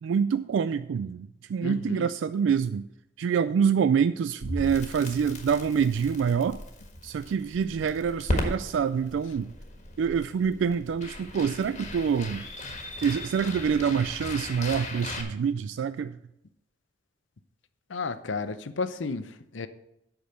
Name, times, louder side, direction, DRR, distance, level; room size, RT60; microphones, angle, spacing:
voice 1, 0.0-2.9 3.2-6.6 7.0-9.5 10.0-12.4 13.0-16.2, right 6 dB, 75° right, 0.3 m, -26 dB
voice 2, 1.6-2.1 17.9-19.7, left 4 dB, 80° left, 0.7 m, -33 dB
Crackle, 4.4-15.2, left 1 dB, 40° left, 1.6 m, -37 dB
8.4 x 6.1 x 7.7 m
head